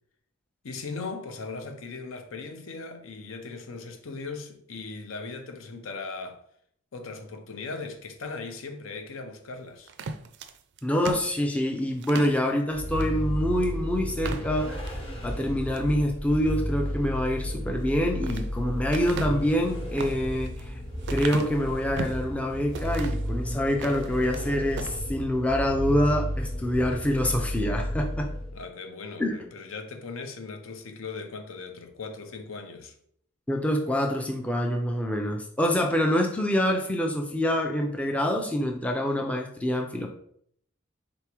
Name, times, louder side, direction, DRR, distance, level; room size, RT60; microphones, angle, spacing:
voice 1, 0.6-6.4 6.9-9.9 28.5-32.9, left 4 dB, 70° left, 0.6 m, -38 dB
sound 1, 9.9-12.4 13.0-13.1 13.5-13.6 14.1-15.0 15.5-15.9 17.7-18.5 18.9-22.3 22.7-23.3 23.7-24.5 24.7-25.0, right 4 dB, 55° right, 0.4 m, -37 dB
voice 2, 10.8-14.9 15.2-20.7 21.1-28.3 29.2-29.3 33.5-40.1, equal, 5° left, 0.4 m, -26 dB
Vehicle, 12.7-28.7, equal, 25° left, 0.9 m, -32 dB
4.0 x 3.5 x 3.0 m
head